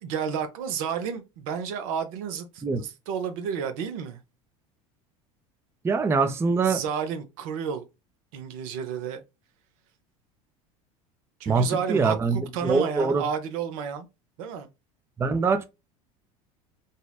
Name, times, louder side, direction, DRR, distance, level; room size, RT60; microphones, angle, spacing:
voice 1, 0.0-4.2 6.6-7.9 8.3-9.2 11.4-14.1 14.4-14.7, right 7 dB, 75° right, 0.6 m, -31 dB
voice 2, 5.8-6.8 11.5-13.2 15.2-15.7, right 4 dB, 15° right, 0.4 m, -24 dB
2.7 x 2.1 x 2.2 m
hypercardioid pair, 85°, 18 cm